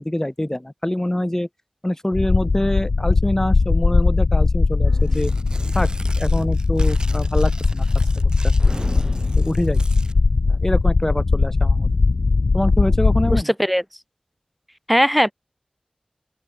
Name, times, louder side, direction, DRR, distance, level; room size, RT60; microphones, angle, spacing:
voice 1, 0.0-1.5 1.8-5.3 5.7-5.9 6.2-7.8 9.4-9.8 10.5-11.9 12.5-13.5, left 1 dB, 20° left, 4.8 m, -24 dB
sound 1, 2.1-13.4, left 3 dB, 75° left, 0.3 m, -19 dB
sound 2, 4.8-8.3 8.6-11.3, right 1 dB, 20° right, 7.3 m, -40 dB
Tearing, 5.0-10.2, right 2 dB, 35° right, 6.5 m, -39 dB
voice 2, 13.3-13.8 14.9-15.3, equal, ahead, 1.0 m, -18 dB
open air
wide cardioid pair, 60°, 2 cm